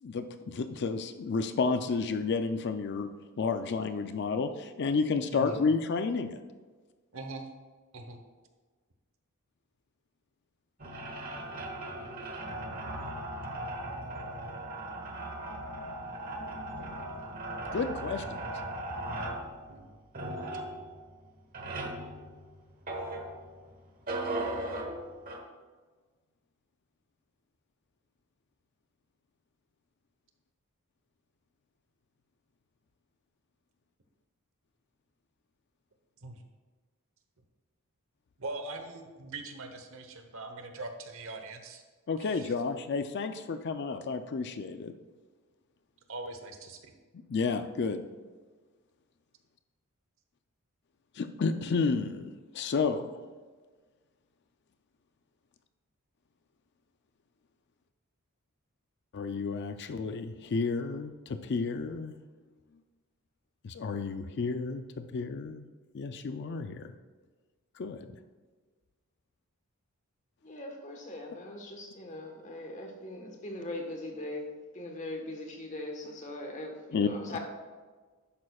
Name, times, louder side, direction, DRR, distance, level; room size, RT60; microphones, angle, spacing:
voice 1, 0.0-3.1 3.4-6.4 17.7-18.4 42.1-44.9 47.3-48.0 51.2-52.3 52.5-53.2 59.1-62.2 63.6-65.7 65.9-66.9 67.8-68.1 76.9-77.1, left 4 dB, 50° left, 8 dB, 0.4 m, -31 dB
voice 2, 7.1-7.5 7.9-8.2 19.7-19.9 36.2-36.4 38.4-41.8 42.2-42.5 46.1-46.9, right 2 dB, 65° right, 6 dB, 1.0 m, -41 dB
sound 1, 10.8-23.6 24.1-25.4, right 1 dB, 40° right, 1.1 m, -38 dB
voice 3, 70.4-74.5 74.7-77.4, left 1 dB, 35° left, 2 dB, 1.3 m, -40 dB
11.0 x 8.6 x 2.3 m, 1.4 s
head